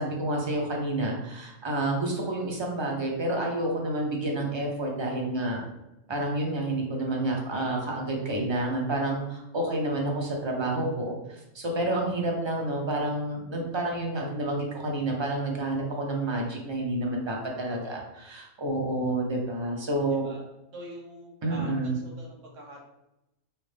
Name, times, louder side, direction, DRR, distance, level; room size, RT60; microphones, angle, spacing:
voice 1, 0.0-5.6 6.1-20.2 21.4-22.0, right 1 dB, 25° right, -1 dB, 0.7 m, -29 dB
voice 2, 17.6-18.0 20.1-20.4 20.7-22.8, right 1 dB, 85° right, -2 dB, 1.3 m, -45 dB
5.6 x 2.0 x 3.3 m, 0.91 s
omnidirectional pair, 1.3 m